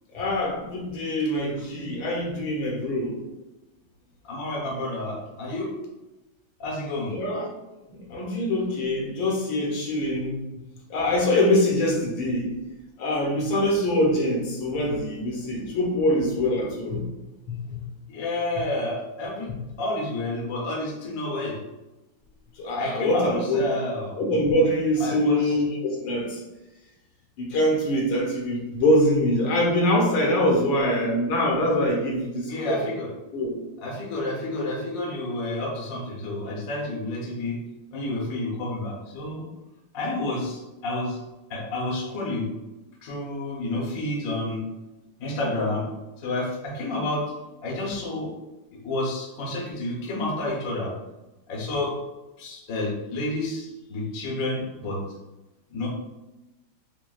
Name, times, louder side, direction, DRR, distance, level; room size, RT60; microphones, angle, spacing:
voice 1, 0.1-3.2 7.1-7.5 7.9-10.5 10.9-12.5 13.0-17.0 17.5-17.8 22.6-23.6 24.2-26.4 27.4-32.8 33.3-33.6, left 1 dB, 70° left, -2 dB, 1.6 m, -24 dB
voice 2, 4.2-5.7 6.6-7.1 18.1-19.5 19.8-21.6 22.7-24.2 25.0-25.5 32.5-33.1 33.8-37.6 37.9-39.5 39.9-41.2 41.5-42.5 43.0-44.6 45.2-45.9 46.2-47.3 47.6-48.3 48.7-50.9 51.5-52.0 52.4-55.0 55.7-55.9, left 2 dB, 55° left, -3 dB, 1.0 m, -30 dB
6.3 x 2.2 x 2.3 m, 1.0 s
omnidirectional pair, 2.3 m